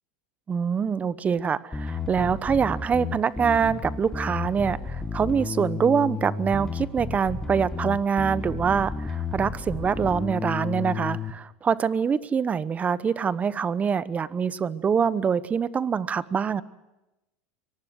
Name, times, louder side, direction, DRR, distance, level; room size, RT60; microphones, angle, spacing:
voice 1, 0.5-16.6, right 6 dB, 25° right, 17 dB, 0.9 m, -25 dB
Bass guitar, 1.7-11.3, left 4 dB, 10° left, 1.7 m, -32 dB
24.0 x 19.0 x 7.9 m, 0.99 s
supercardioid pair, 110°, 6 cm